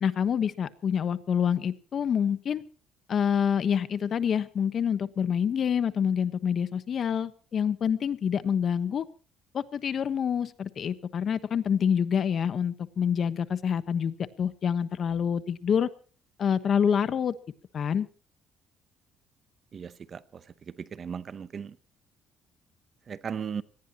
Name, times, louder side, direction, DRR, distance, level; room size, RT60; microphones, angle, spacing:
voice 1, 0.0-2.6 3.1-9.0 9.5-15.9 16.4-17.3 17.7-18.1, left 7 dB, 45° left, 1.2 m, -27 dB
voice 2, 19.7-20.2 20.9-21.7 23.1-23.6, right 7 dB, 35° right, 0.8 m, -36 dB
25.0 x 18.5 x 3.0 m
cardioid pair, 125°, 0 cm